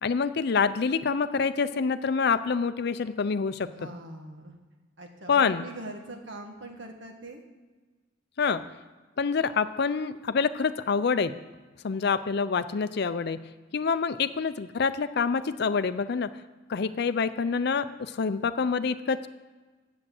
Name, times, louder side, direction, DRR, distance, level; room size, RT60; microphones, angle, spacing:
voice 1, 0.0-3.7 5.3-5.6 8.4-8.6 9.2-11.3 11.8-13.4 13.7-16.3 16.7-17.9 18.2-19.3, left 5 dB, 55° left, 13 dB, 0.5 m, -26 dB
voice 2, 3.7-4.5 5.0-7.4, right 1 dB, 65° right, 3 dB, 1.6 m, -42 dB
8.5 x 7.7 x 7.6 m, 1.3 s
head